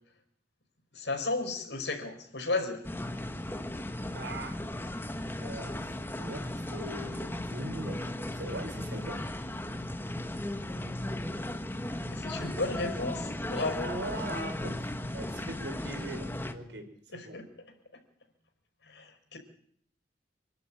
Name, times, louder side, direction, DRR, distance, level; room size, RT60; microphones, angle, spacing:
voice 1, 0.9-2.8 12.1-13.9 17.1-17.4 18.8-19.4, left 3 dB, 80° left, 4 dB, 5.1 m, -34 dB
sound 1, 2.8-16.5, left 1 dB, 15° left, 1.4 m, -36 dB
voice 2, 4.1-4.6 5.4-9.2 13.8-16.9 17.1-17.4, right 1 dB, 85° right, 6 dB, 4.6 m, -41 dB
26.0 x 11.5 x 8.9 m, 0.66 s
head